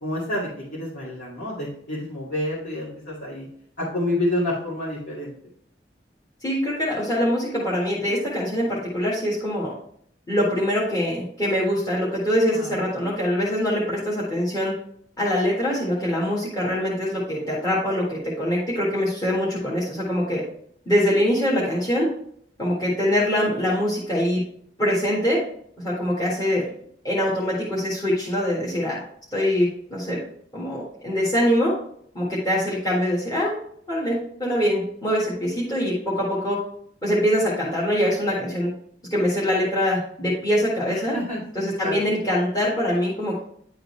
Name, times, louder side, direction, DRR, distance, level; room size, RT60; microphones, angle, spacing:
voice 1, 0.0-3.5 3.8-5.3 12.5-12.7 40.9-42.0, left 1 dB, 60° left, -10 dB, 2.3 m, -29 dB
voice 2, 6.4-9.7 10.3-14.7 15.2-20.4 20.9-22.1 22.6-24.4 24.8-25.4 25.8-26.7 27.0-29.0 29.3-30.2 30.5-31.7 32.2-33.6 33.9-36.6 37.0-38.7 39.1-41.1 41.6-43.4, equal, 20° left, -7 dB, 1.7 m, -23 dB
10.5 x 3.9 x 3.2 m, 0.65 s
head